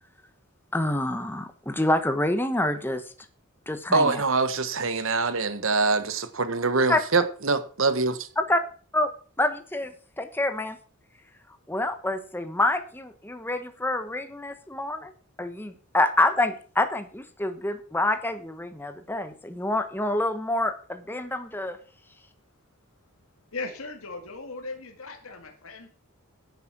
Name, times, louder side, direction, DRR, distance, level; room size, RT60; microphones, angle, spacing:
voice 1, 0.7-3.0 3.7-4.2 6.9-7.0 8.4-8.6 8.9-9.1 9.4-10.8 11.7-15.1 15.4-21.8, left 1 dB, 10° left, 1.1 m, -27 dB
voice 2, 3.9-8.3, right 3 dB, 60° right, 1.3 m, -24 dB
voice 3, 23.5-26.0, left 3 dB, 70° left, 2.0 m, -38 dB
10.5 x 9.0 x 6.0 m
head